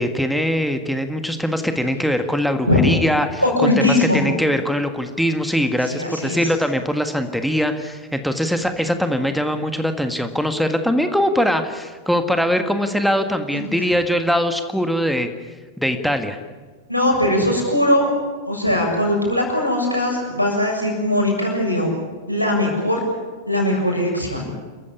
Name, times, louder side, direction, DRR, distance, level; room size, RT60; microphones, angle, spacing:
voice 1, 0.0-15.3 15.8-16.4, equal, ahead, 7 dB, 1.7 m, -22 dB
voice 2, 3.4-4.3 5.9-6.4 13.5-13.7 16.9-18.1 18.4-21.9 22.3-23.0 23.5-24.4, left 1 dB, 90° right, 1 dB, 7.0 m, -20 dB
28.0 x 14.5 x 10.0 m, 1.4 s
figure-of-eight pair, 90°, 0 cm